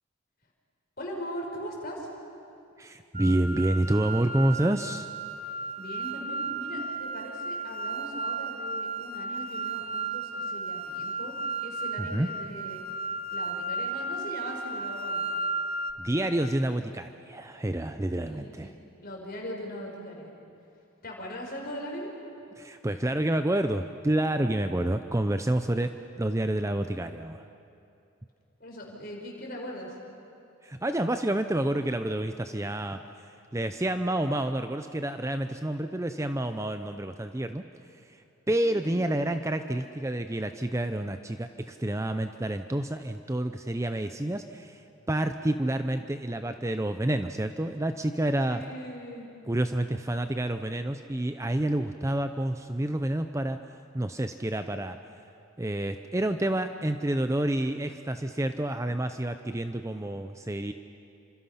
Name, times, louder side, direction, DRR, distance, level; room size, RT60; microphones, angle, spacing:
voice 1, 1.0-2.1 5.5-11.3 11.6-12.8 13.3-15.3 18.2-20.3 21.0-22.1 28.6-30.0 38.6-39.1 48.5-49.3, equal, 45° left, -1 dB, 5.2 m, -40 dB
voice 2, 2.8-5.1 12.0-12.3 16.0-18.7 22.6-27.4 30.6-37.6 38.1-48.6 49.5-53.6 53.9-55.0 55.6-60.7, right 1 dB, 15° right, 8 dB, 0.5 m, -29 dB
sound 1, 3.1-15.9, right 3 dB, 30° right, 1.1 m, -34 dB
29.5 x 26.0 x 5.8 m, 2.6 s
head